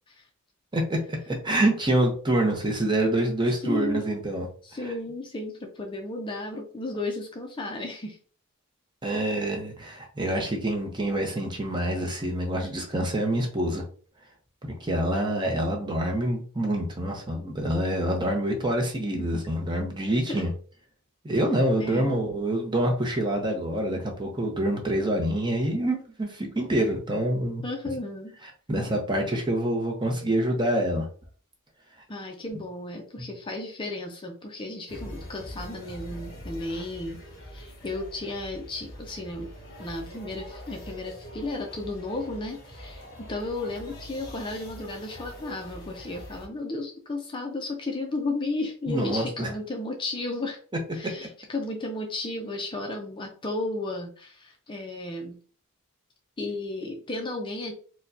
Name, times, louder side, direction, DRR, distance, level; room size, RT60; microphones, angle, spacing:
voice 1, 0.7-4.5 9.0-13.8 14.8-20.5 21.2-27.6 28.7-31.1 33.2-33.3 48.9-49.5, right 1 dB, 20° right, 1 dB, 0.7 m, -26 dB
voice 2, 3.5-4.1 4.6-8.2 20.3-20.4 21.8-22.3 27.6-28.3 32.1-37.2 37.5-39.5 39.8-50.6 50.9-55.4 56.4-57.7, left 2 dB, 20° left, 2 dB, 0.5 m, -34 dB
sound 1, 34.9-46.5, equal, 45° left, 1.5 m, -43 dB
4.4 x 2.2 x 2.6 m, 0.42 s
head